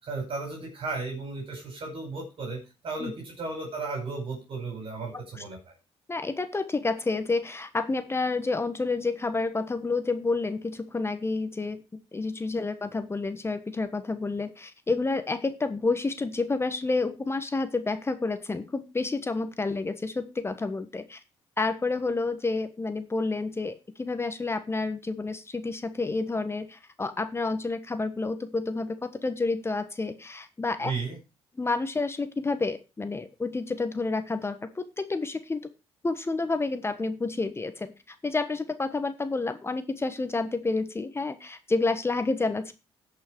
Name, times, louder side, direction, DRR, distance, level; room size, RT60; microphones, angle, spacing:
voice 1, 0.0-5.7 30.8-31.2, right 3 dB, 55° right, 1 dB, 4.8 m, -35 dB
voice 2, 6.1-11.8 12.1-21.2 21.6-30.9 31.6-35.7 36.0-42.7, left 3 dB, 25° left, 10 dB, 1.3 m, -29 dB
15.5 x 5.7 x 4.6 m, 0.29 s
supercardioid pair, 75°, 11 cm